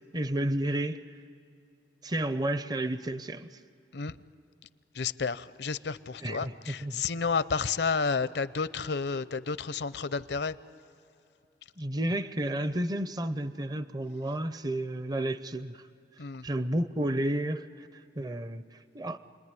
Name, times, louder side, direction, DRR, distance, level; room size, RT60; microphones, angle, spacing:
voice 1, 0.1-1.1 2.0-3.5 6.2-7.0 11.8-15.8 16.4-18.6 18.9-19.2, right 1 dB, 25° right, 0.6 m, -31 dB
voice 2, 4.9-10.6 16.2-16.5, left 5 dB, 70° left, 0.7 m, -31 dB
29.0 x 21.0 x 9.7 m
head